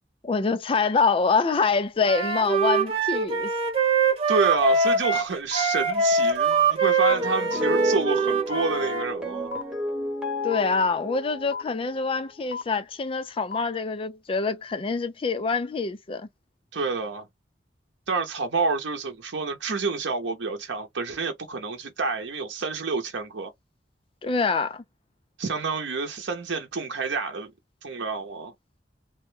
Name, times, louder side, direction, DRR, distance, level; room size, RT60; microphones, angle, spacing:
voice 1, 0.2-3.5 10.4-16.3 24.2-24.8, left 4 dB, 30° left, 0.4 m, -25 dB
Wind instrument woodwind instrument, 2.0-9.0, right 4 dB, 35° right, 1.0 m, -23 dB
voice 2, 4.3-9.5 16.7-17.3 18.1-23.5 25.4-27.5 27.8-28.5, right 4 dB, 85° right, 0.7 m, -28 dB
sound 1, 4.5-4.6 5.5-5.6 6.5-6.6 7.5-7.6 8.5-8.6 9.5-9.6 10.5-10.6 11.5-11.6 12.5-12.6 13.5-13.6, left 5 dB, 80° left, 0.7 m, -32 dB
sound 2, 7.1-12.1, equal, 5° right, 1.0 m, -31 dB
3.0 x 2.2 x 3.1 m
head